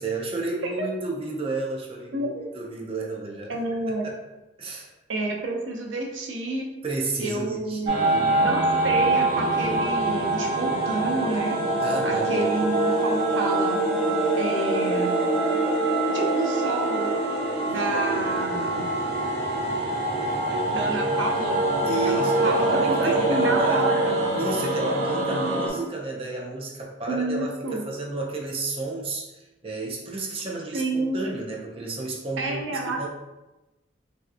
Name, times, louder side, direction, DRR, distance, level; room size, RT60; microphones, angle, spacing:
voice 1, 0.0-3.6 4.0-4.1 4.6-4.9 6.8-8.4 11.8-12.5 17.9-18.1 21.8-23.9 24.3-33.1, right 3 dB, 30° right, -1 dB, 0.4 m, -32 dB
voice 2, 2.1-2.5 3.5-4.1 5.1-6.7 7.2-8.0 8.4-11.6 12.0-13.8 14.4-15.1 16.1-17.1 17.6-18.9 20.5-21.6 22.0-24.2 27.1-27.8 30.7-31.2 32.4-33.1, right 2 dB, 85° right, 0 dB, 0.6 m, -29 dB
sound 1, 7.9-25.7, right 2 dB, 55° right, 0.7 m, -24 dB
3.3 x 2.7 x 2.4 m, 1.0 s
head